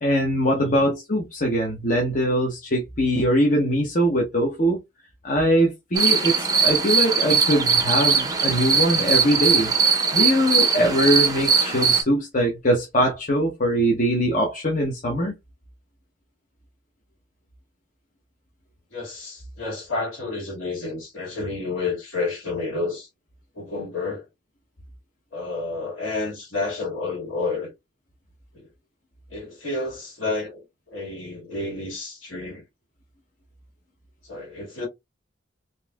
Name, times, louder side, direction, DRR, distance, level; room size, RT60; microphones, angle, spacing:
voice 1, 0.0-4.8 5.2-9.7 10.1-15.3, equal, 40° left, 0.8 m, -22 dB
voice 2, 0.5-0.9 18.9-23.1 23.6-24.2 25.3-27.7 28.5-28.7 29.3-32.6 34.2-34.9, left 3 dB, 75° left, 2.1 m, -30 dB
sound 1, 6.0-12.0, right 5 dB, 20° right, 0.6 m, -20 dB
3.9 x 2.6 x 2.3 m
head